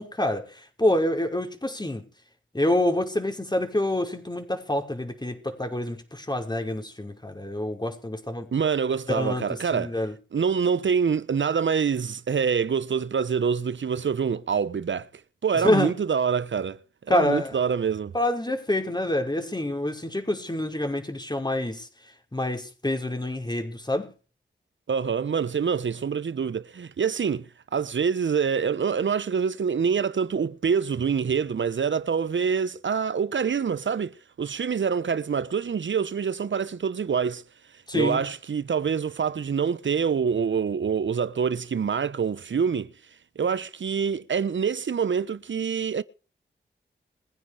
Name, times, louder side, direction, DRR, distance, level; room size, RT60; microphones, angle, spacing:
voice 1, 0.0-2.1 2.5-8.5 9.1-10.1 15.5-15.9 17.1-17.6 18.1-21.9 22.3-24.1 37.9-38.2, left 1 dB, 20° left, 5.6 m, -27 dB
voice 2, 8.5-9.9 10.3-15.1 15.4-16.8 17.1-18.1 24.9-37.4 37.9-42.9 43.4-46.0, right 6 dB, 70° right, 1.1 m, -26 dB
22.5 x 9.7 x 5.0 m
cardioid pair, 40°, 20 cm